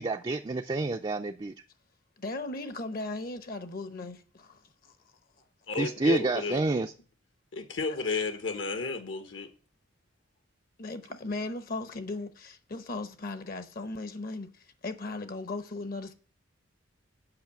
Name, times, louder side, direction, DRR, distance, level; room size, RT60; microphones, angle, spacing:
voice 1, 0.0-1.5 5.8-6.9, right 2 dB, 25° right, 0.4 m, -28 dB
voice 2, 2.2-4.9 10.8-16.1, left 2 dB, 50° left, 0.8 m, -37 dB
voice 3, 5.7-6.6 7.5-9.5, left 4 dB, 75° left, 1.2 m, -32 dB
8.0 x 5.5 x 7.2 m
head